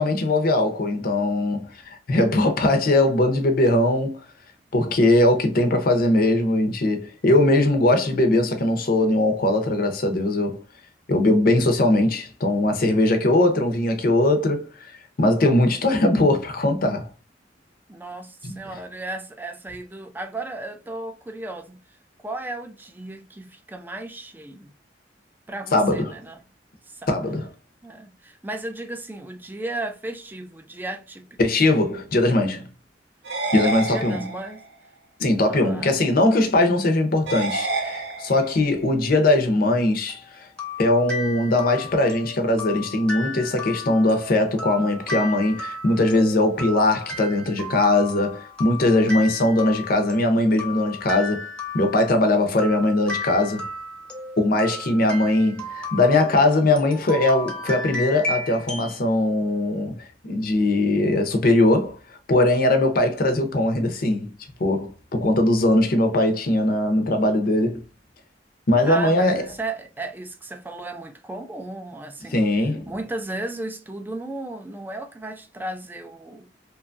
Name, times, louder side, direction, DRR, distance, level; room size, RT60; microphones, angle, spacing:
voice 1, 0.0-4.2 4.7-10.6 11.1-14.9 15.2-17.1 18.4-18.6 25.7-26.0 27.1-27.5 31.4-32.7 33.5-34.2 35.2-40.5 40.8-51.4 51.7-53.7 54.4-59.9 60.2-62.0 62.3-64.3 64.6-67.8 68.7-69.4 72.3-72.9, left 1 dB, 55° left, 0.6 m, -20 dB
voice 2, 17.9-21.8 22.2-24.7 25.5-26.4 26.9-27.1 27.8-31.3 33.6-34.6 35.4-36.1 68.8-72.4 72.9-76.5, right 2 dB, 10° right, 0.4 m, -35 dB
sound 1, 33.2-34.7 37.3-38.7, right 3 dB, 70° right, 0.7 m, -28 dB
sound 2, 40.1-59.0, left 2 dB, 5° left, 0.7 m, -34 dB
2.9 x 2.3 x 2.5 m
head